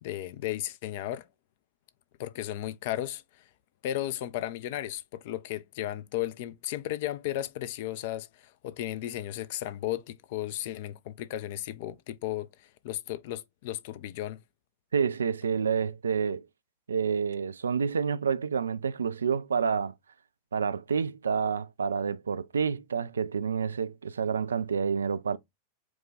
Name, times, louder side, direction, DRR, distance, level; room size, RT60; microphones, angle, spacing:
voice 1, 0.0-1.3 2.2-3.4 3.8-14.4, left 13 dB, 50° left, 0.5 m, -35 dB
voice 2, 14.9-16.5 16.9-19.9 20.5-25.4, right 6 dB, 70° right, 0.3 m, -28 dB
4.7 x 2.3 x 3.9 m
figure-of-eight pair, 90°, 0 cm